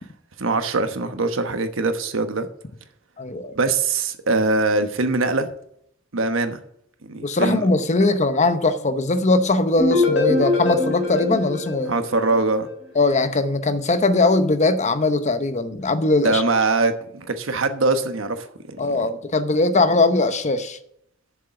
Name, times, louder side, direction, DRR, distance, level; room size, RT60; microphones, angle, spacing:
voice 1, 0.4-2.5 3.5-5.5 6.1-6.6 7.0-7.7 11.9-12.7 16.2-19.0, right 3 dB, 70° right, 1.1 m, -22 dB
voice 2, 3.2-3.5 7.2-11.9 12.9-16.4 18.8-20.8, left 2 dB, 35° left, 0.8 m, -20 dB
sound 1, 9.8-12.7, left 3 dB, 65° left, 3.6 m, -23 dB
7.3 x 6.9 x 7.8 m
head